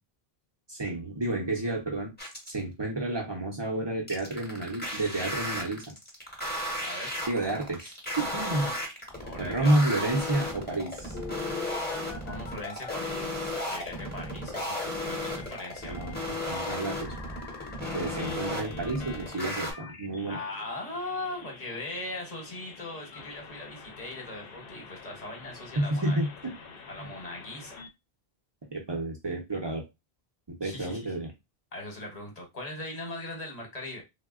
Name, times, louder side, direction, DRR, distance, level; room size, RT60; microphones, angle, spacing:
voice 1, 0.7-2.1 2.5-5.8 7.3-8.7 9.4-11.2 15.8-16.2 16.5-17.1 17.9-20.4 25.8-26.5 27.0-27.1 28.7-29.8 30.6-31.3, right 2 dB, 30° right, 0 dB, 0.6 m, -30 dB
sound 1, 2.2-2.6 4.1-19.7, left 1 dB, 10° left, 0.7 m, -34 dB
voice 2, 6.8-7.1 9.2-10.0 12.2-16.0 20.2-26.3 26.9-27.7 30.6-31.1 31.7-34.0, left 2 dB, 40° left, 1 dB, 1.0 m, -39 dB
Telephone, 11.1-13.6 15.0-27.9, left 4 dB, 65° left, 0.7 m, -45 dB
3.4 x 2.1 x 2.3 m, 0.22 s
omnidirectional pair, 1.1 m